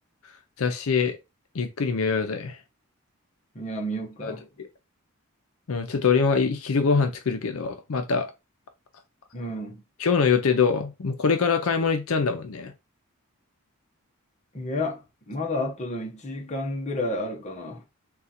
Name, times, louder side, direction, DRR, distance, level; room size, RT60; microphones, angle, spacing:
voice 1, 0.6-1.2 1.5-2.6 4.2-4.3 4.6-4.7 5.7-8.3 10.0-12.7, left 5 dB, 70° left, 0.6 m, -24 dB
voice 2, 3.5-4.5 9.3-9.8 14.5-17.8, left 1 dB, 30° left, 0.8 m, -31 dB
3.8 x 2.4 x 4.1 m
head